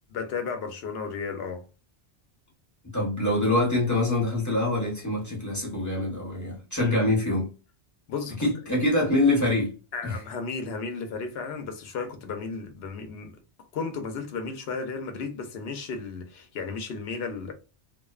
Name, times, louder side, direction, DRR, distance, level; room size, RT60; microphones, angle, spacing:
voice 1, 0.1-1.7 6.8-7.1 8.1-8.8 9.9-17.5, left 4 dB, 70° left, 0.8 m, -34 dB
voice 2, 2.9-7.5 8.4-9.7 10.0-10.2, left 2 dB, 20° left, 0.8 m, -25 dB
2.5 x 2.1 x 2.3 m
omnidirectional pair, 1.1 m